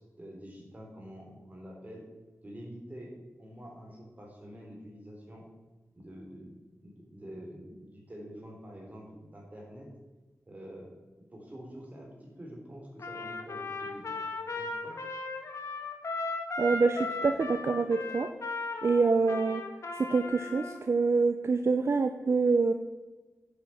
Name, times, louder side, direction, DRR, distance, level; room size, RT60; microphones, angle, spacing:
voice 1, 0.0-2.0 2.4-5.5 6.0-9.9 10.5-10.9 11.3-14.3 14.6-15.0, equal, 30° right, -1 dB, 3.8 m, -47 dB
Trumpet, 13.0-20.8, left 3 dB, 65° left, 1.5 m, -37 dB
voice 2, 16.6-18.3 18.8-19.6 20.1-22.7, right 4 dB, 55° right, 8 dB, 0.6 m, -26 dB
9.9 x 8.0 x 5.7 m, 1.2 s
wide cardioid pair, 115°, 6 cm